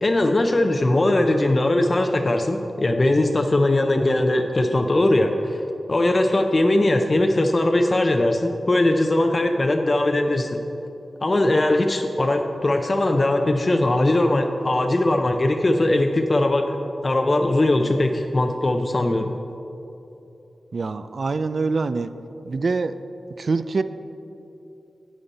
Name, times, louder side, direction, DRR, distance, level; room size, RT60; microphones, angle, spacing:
voice 1, 0.0-5.6 5.9-10.5 11.2-16.8 17.0-19.3, left 1 dB, 35° left, 4 dB, 0.5 m, -20 dB
voice 2, 20.7-22.1 22.4-23.0 23.4-23.8, right 4 dB, 60° right, 12 dB, 0.3 m, -24 dB
8.9 x 8.6 x 4.1 m, 2.9 s
wide cardioid pair, 80°, 0 cm